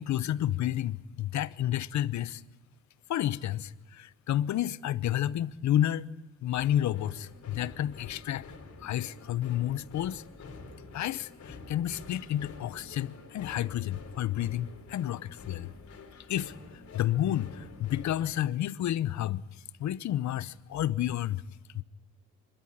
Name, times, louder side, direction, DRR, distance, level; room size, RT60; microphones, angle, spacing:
voice 1, 0.0-2.4 3.1-6.1 6.4-8.4 8.8-10.2 10.9-15.7 16.3-16.5 16.9-19.4 19.8-21.4 21.7-21.8, left 12 dB, 65° left, 0.8 m, -30 dB
sound 1, 6.6-18.4, left 3 dB, 50° left, 4.2 m, -48 dB
25.0 x 13.0 x 10.0 m
cardioid pair, 90°, 30 cm